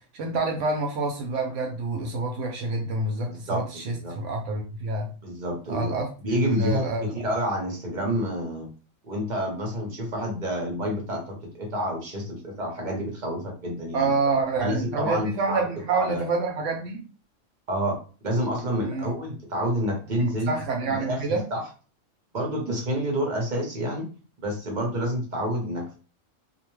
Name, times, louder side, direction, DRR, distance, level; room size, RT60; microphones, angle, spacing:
voice 1, 0.1-5.1 5.7-7.1 13.9-17.0 18.8-19.1 20.5-21.4, right 3 dB, 75° right, 1 dB, 0.9 m, -27 dB
voice 2, 3.2-4.1 5.2-5.9 6.2-8.7 9.0-14.1 14.6-15.6 15.9-16.3 17.7-18.0 18.2-20.5 20.9-21.6 22.3-24.1 24.4-25.9, equal, 40° right, 0 dB, 0.9 m, -28 dB
2.7 x 2.1 x 3.0 m, 0.37 s
omnidirectional pair, 1.3 m